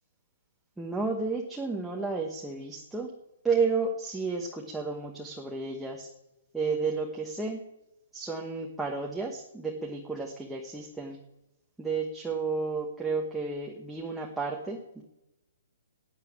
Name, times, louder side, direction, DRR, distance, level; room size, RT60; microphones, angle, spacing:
voice 1, 0.8-3.1 3.4-6.1 6.5-7.6 8.1-11.2 11.8-15.0, right 4 dB, 5° right, -1 dB, 1.2 m, -32 dB
12.0 x 9.0 x 8.6 m, 0.90 s
hypercardioid pair, 155°, 0 cm